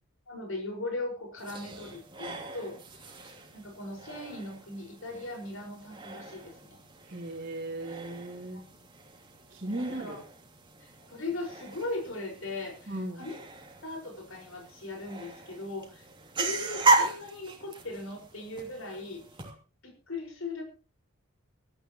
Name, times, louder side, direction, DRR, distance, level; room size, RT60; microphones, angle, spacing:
voice 1, 0.3-6.8 9.7-10.2 10.8-13.4 13.8-16.1 16.4-19.2 19.8-20.6, left 2 dB, 65° left, 2 dB, 5.2 m, -39 dB
sound 1, 1.4-19.5, right 3 dB, 25° right, 2.7 m, -35 dB
voice 2, 7.0-8.6 9.5-10.1 12.9-13.2, right 1 dB, 40° right, -5 dB, 2.8 m, -36 dB
22.5 x 13.0 x 3.0 m, 0.35 s
head